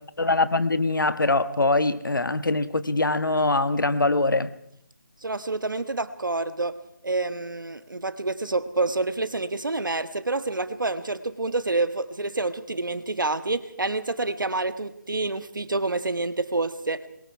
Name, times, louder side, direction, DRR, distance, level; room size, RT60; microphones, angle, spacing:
voice 1, 0.2-4.5, left 2 dB, 90° left, 1.5 m, -23 dB
voice 2, 5.2-17.0, right 3 dB, 85° right, 1.8 m, -28 dB
25.0 x 22.5 x 4.7 m
figure-of-eight pair, 165°, 10 cm